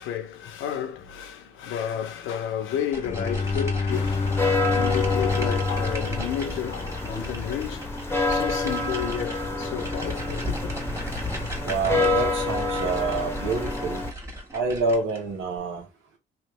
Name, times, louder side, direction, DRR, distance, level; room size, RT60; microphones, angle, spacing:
voice 1, 0.0-4.3 4.7-10.7, left 9 dB, 85° left, 0.8 m, -32 dB
sound 1, 2.9-15.3, equal, 15° right, 1.6 m, -36 dB
Bowed string instrument, 3.0-7.5, left 4 dB, 35° left, 0.4 m, -28 dB
sound 2, 3.9-14.1, left 3 dB, 10° left, 0.9 m, -28 dB
voice 2, 11.6-14.0 14.5-15.9, right 3 dB, 90° right, 1.4 m, -27 dB
3.2 x 2.7 x 3.1 m
cardioid pair, 90°, 20 cm